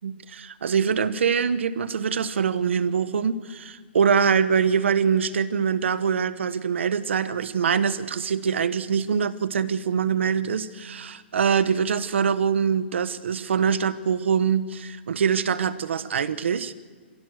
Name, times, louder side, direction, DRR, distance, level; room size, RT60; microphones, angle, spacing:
voice 1, 0.0-16.7, right 6 dB, 80° right, 13 dB, 1.2 m, -24 dB
29.0 x 16.0 x 6.6 m, 1.5 s
hypercardioid pair, 170°, 6 cm